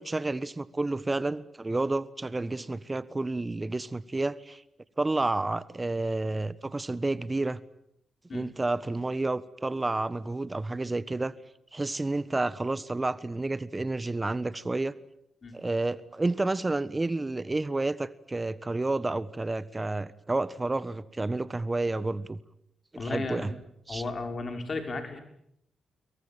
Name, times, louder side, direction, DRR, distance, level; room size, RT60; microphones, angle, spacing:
voice 1, 0.0-4.6 5.0-7.6 8.3-11.3 11.7-14.9 15.5-22.4 23.0-23.5 23.9-24.0, right 2 dB, 25° right, 16 dB, 1.3 m, -30 dB
voice 2, 23.0-23.5 23.9-25.2, left 3 dB, 50° left, 6 dB, 5.8 m, -34 dB
26.5 x 23.0 x 8.9 m, 0.75 s
hypercardioid pair, 40°, 0 cm